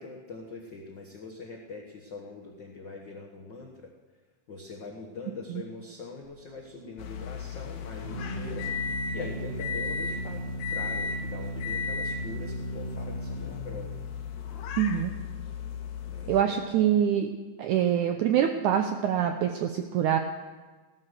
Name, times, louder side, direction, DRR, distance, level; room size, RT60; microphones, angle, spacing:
voice 1, 0.0-3.9 4.5-14.0 16.0-16.6, left 3 dB, 90° left, -1 dB, 1.0 m, -42 dB
Organ, 6.2-16.7, right 1 dB, 60° right, 7.1 m, -38 dB
sound 1, 7.0-16.4, left 6 dB, 75° left, 2.8 m, -36 dB
voice 2, 14.8-15.1 16.3-17.3 17.6-20.2, right 9 dB, 90° right, 6 dB, 1.7 m, -25 dB
16.5 x 13.5 x 6.6 m, 1.3 s
omnidirectional pair, 4.5 m